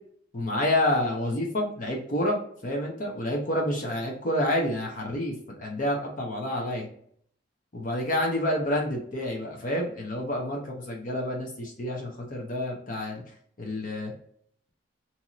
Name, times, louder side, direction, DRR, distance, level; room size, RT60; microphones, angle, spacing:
voice 1, 0.3-6.9 7.7-10.6 10.9-13.2 13.6-14.1, left 1 dB, 45° left, 0 dB, 0.7 m, -28 dB
2.9 x 2.7 x 2.4 m, 0.62 s
head